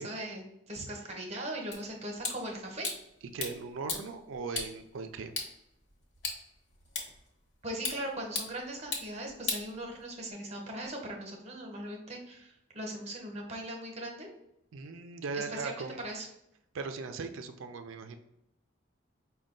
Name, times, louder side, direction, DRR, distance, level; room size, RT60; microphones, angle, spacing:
voice 1, 0.0-2.9 7.6-14.3 15.3-16.3, right 1 dB, 35° right, 1 dB, 0.8 m, -39 dB
sound 1, 1.7-10.3, left 3 dB, 55° left, 1.0 m, -40 dB
voice 2, 3.3-5.3 14.7-16.0 16.7-18.2, right 4 dB, 85° right, 8 dB, 0.4 m, -39 dB
5.2 x 2.2 x 3.7 m, 0.81 s
head